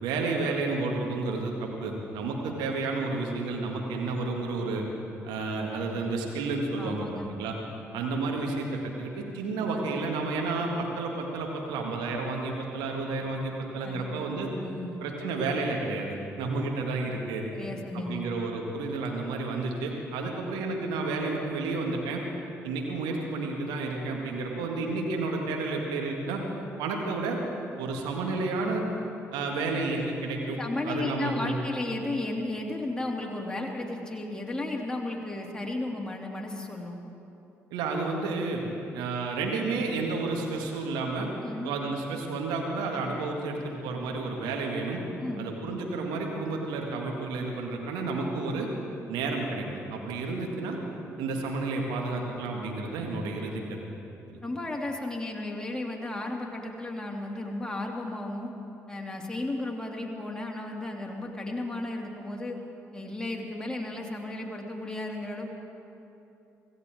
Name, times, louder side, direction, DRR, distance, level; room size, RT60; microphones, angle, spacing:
voice 1, 0.0-4.8 5.2-7.6 7.9-14.5 15.0-17.5 17.9-22.2 22.6-26.4 26.8-27.4 27.8-28.8 29.3-31.6 37.7-38.7 38.9-41.3 41.6-45.0 45.4-48.7 49.1-50.8 51.2-53.8 54.3-54.4, right 3 dB, 65° right, 1 dB, 2.0 m, -31 dB
voice 2, 6.8-7.3 13.8-14.1 14.6-15.0 17.5-18.2 30.6-37.0 41.4-41.7 45.2-45.5 54.4-58.5 58.9-62.6 62.9-65.5, left 2 dB, 10° left, -1 dB, 2.6 m, -34 dB
25.0 x 15.5 x 3.7 m, 2.8 s
figure-of-eight pair, 40°, 8 cm